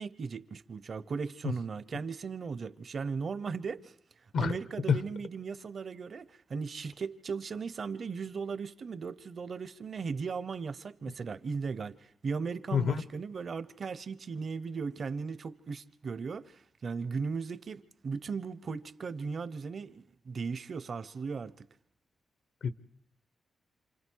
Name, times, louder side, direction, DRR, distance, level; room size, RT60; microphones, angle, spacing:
voice 1, 0.0-3.9 4.4-21.7, right 5 dB, 50° right, 0.9 m, -37 dB
voice 2, 1.4-1.5 4.3-4.5 4.9-5.0 12.7-12.9 22.6-22.7, left 6 dB, 75° left, 1.2 m, -26 dB
28.5 x 27.0 x 4.7 m
wide cardioid pair, 120°, 0 cm